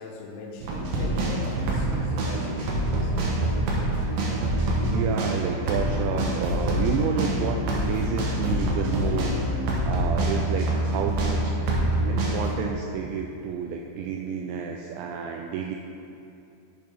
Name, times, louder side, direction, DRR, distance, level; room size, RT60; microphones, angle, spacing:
voice 1, 0.0-3.1, left 3 dB, 85° left, 1 dB, 3.4 m, -40 dB
sound 1, 0.6-12.6, right 1 dB, 70° right, 2.4 m, -26 dB
voice 2, 4.8-9.3 9.8-11.5 12.1-15.8, right 7 dB, 85° right, 2 dB, 2.6 m, -30 dB
10.5 x 8.5 x 3.5 m, 2.7 s
omnidirectional pair, 5.7 m